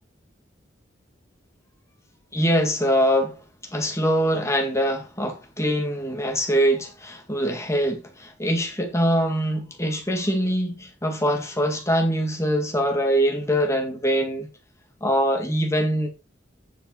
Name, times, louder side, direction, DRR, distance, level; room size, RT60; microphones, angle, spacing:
voice 1, 2.3-3.4 3.7-14.5 15.0-16.1, equal, 15° left, 1.9 m, -23 dB
9.6 x 5.3 x 4.4 m
head